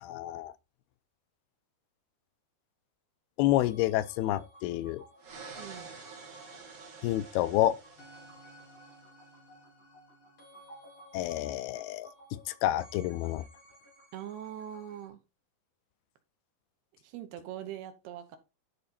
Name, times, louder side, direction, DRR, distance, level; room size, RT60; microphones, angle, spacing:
voice 1, 0.0-0.5 3.4-5.0 7.0-7.8 11.1-12.1 12.5-13.4, left 14 dB, 85° left, 2.4 m, -29 dB
sound 1, 3.6-15.1, equal, 35° left, 2.9 m, -55 dB
sound 2, 5.2-9.1, right 4 dB, 50° right, 3.5 m, -49 dB
voice 2, 5.6-5.9 14.1-15.2 17.0-18.4, right 11 dB, 80° right, 3.1 m, -42 dB
11.0 x 4.1 x 4.3 m
omnidirectional pair, 4.6 m